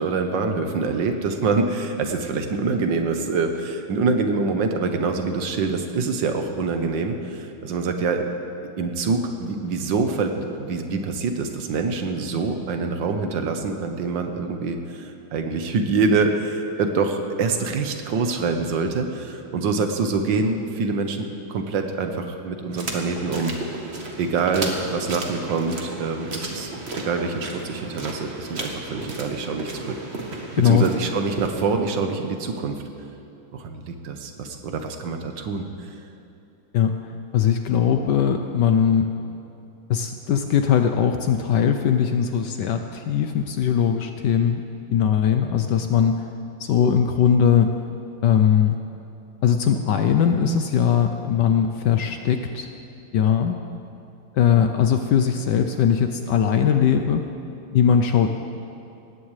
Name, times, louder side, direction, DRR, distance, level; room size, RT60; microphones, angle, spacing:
voice 1, 0.0-8.3 8.8-23.5 24.2-30.0 30.6-32.8 33.5-35.7, right 4 dB, 65° right, 5 dB, 1.6 m, -25 dB
sound 1, 22.7-31.5, right 2 dB, 35° right, 1.4 m, -34 dB
voice 2, 30.6-30.9 36.7-37.0 37.3-39.1 39.9-44.6 44.9-46.3 46.6-47.7 48.2-48.8 49.4-52.7 53.1-53.6 54.3-57.3 57.7-58.3, left 8 dB, 70° left, 6 dB, 1.1 m, -20 dB
19.0 x 16.0 x 3.3 m, 2.7 s
omnidirectional pair, 2.4 m